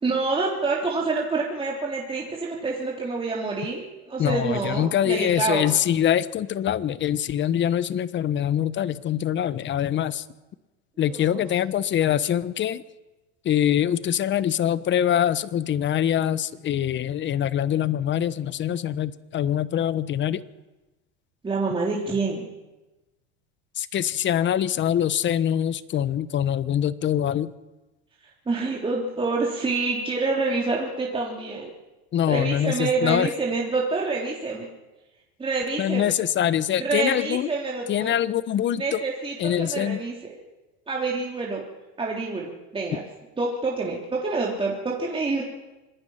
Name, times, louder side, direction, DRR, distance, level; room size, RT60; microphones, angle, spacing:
voice 1, 0.0-5.7 11.1-11.4 21.4-22.4 28.2-31.7 32.3-34.7 35.4-36.1 36.8-38.1 38.8-40.4 40.9-41.6 42.0-43.0 43.4-45.4, right 3 dB, 15° right, -2 dB, 3.5 m, -27 dB
voice 2, 4.2-10.2 11.0-12.8 13.4-20.4 23.8-27.5 32.1-33.3 35.8-37.5 37.9-39.0 39.4-40.0, left 10 dB, 35° left, 16 dB, 1.0 m, -24 dB
26.0 x 19.0 x 5.8 m, 1.1 s
supercardioid pair, 115°, 33 cm